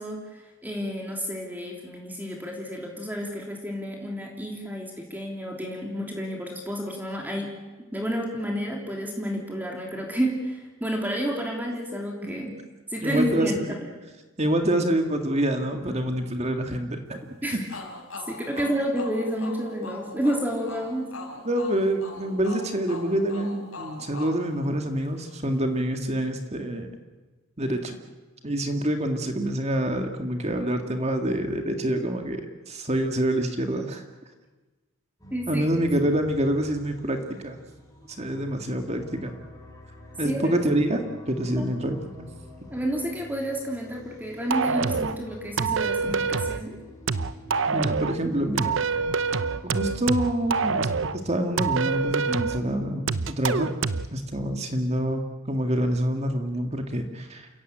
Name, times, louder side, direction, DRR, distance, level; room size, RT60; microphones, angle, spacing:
voice 1, 0.0-7.6 7.9-12.5 12.9-13.9 17.4-17.6 18.3-21.1 35.3-35.6 40.2-40.5 41.6-41.7 42.7-46.8, equal, 10° right, 0 dB, 3.2 m, -30 dB
voice 2, 13.0-13.5 14.4-17.6 21.5-26.9 27.6-28.0 28.4-34.0 35.5-37.6 38.0-39.3 40.2-42.3 47.7-48.8 49.6-50.9 51.2-53.7 54.1-57.5, right 1 dB, 30° right, 5 dB, 2.0 m, -26 dB
sound 1, 17.7-25.3, left 3 dB, 85° left, 4.5 m, -42 dB
sound 2, 35.2-51.4, left 1 dB, 15° left, 6.7 m, -46 dB
sound 3, 44.5-45.2 45.6-46.6 47.1-48.2 48.6-51.2 51.6-52.6 53.1-54.1, right 5 dB, 65° right, 0.9 m, -26 dB
28.5 x 15.5 x 8.9 m, 1.2 s
head